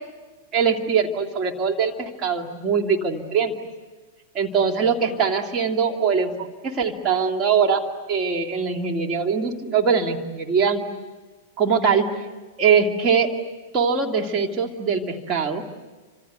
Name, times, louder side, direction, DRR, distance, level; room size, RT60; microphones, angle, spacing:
voice 1, 0.5-3.5 4.3-7.8 8.1-10.8 11.6-12.2 12.6-13.3 13.7-15.6, right 6 dB, 30° right, 3 dB, 2.4 m, -22 dB
29.0 x 26.0 x 7.9 m, 1.3 s
figure-of-eight pair, 100°, 0 cm